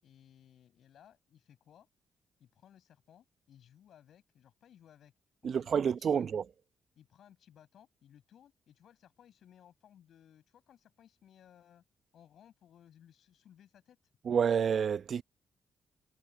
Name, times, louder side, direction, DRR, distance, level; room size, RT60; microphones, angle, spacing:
voice 1, 0.0-1.9 2.4-5.1 5.4-6.3 7.0-11.8 12.1-14.0, left 10 dB, 70° left, 8.0 m, -61 dB
voice 2, 5.4-6.4 14.2-15.2, right 7 dB, 60° right, 1.0 m, -29 dB
hypercardioid pair, 45°, 0 cm